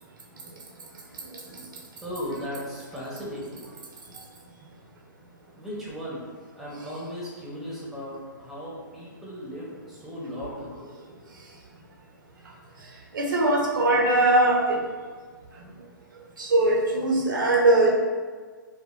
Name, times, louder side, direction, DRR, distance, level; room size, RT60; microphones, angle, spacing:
voice 1, 2.0-3.7 5.6-6.2 6.6-10.9, equal, ahead, -7 dB, 0.9 m, -36 dB
voice 2, 13.1-14.8 16.4-17.9, right 2 dB, 75° right, -1 dB, 0.9 m, -20 dB
4.9 x 2.4 x 2.5 m, 1.5 s
hypercardioid pair, 130°, 11 cm